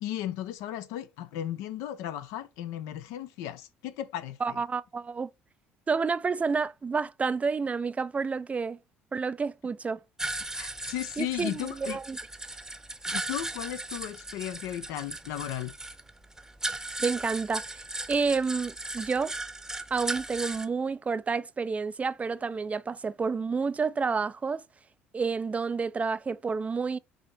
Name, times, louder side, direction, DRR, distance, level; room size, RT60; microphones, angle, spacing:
voice 1, 0.0-4.6 10.6-12.0 13.1-15.7, left 12 dB, 70° left, 0.6 m, -35 dB
voice 2, 4.4-5.3 5.9-8.8 9.1-10.0 11.2-12.2 17.0-17.8 18.1-19.3 19.9-24.6 25.1-27.0, right 5 dB, 25° right, 0.4 m, -29 dB
sound 1, 10.2-20.7, right 2 dB, 10° right, 0.8 m, -37 dB
4.9 x 2.8 x 3.7 m
hypercardioid pair, 60°, 5 cm